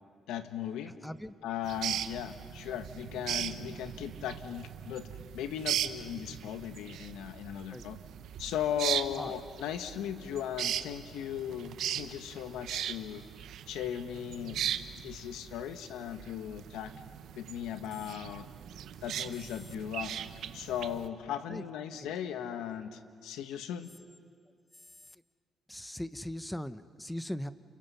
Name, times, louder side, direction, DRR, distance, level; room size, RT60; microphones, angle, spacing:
voice 1, 0.3-0.9 1.4-8.0 8.4-13.2 13.7-14.6 15.0-16.9 17.3-18.5 19.0-20.1 20.5-23.9, left 9 dB, 90° left, 8 dB, 1.5 m, -37 dB
voice 2, 1.0-1.3 7.7-7.8 9.2-9.3 21.5-21.6 22.0-22.1 25.7-27.5, left 1 dB, 5° left, 12 dB, 0.9 m, -39 dB
sound 1, 1.6-21.1, right 10 dB, 75° right, 0.9 m, -39 dB
29.5 x 28.5 x 5.7 m, 2.1 s
cardioid pair, 90°, 0 cm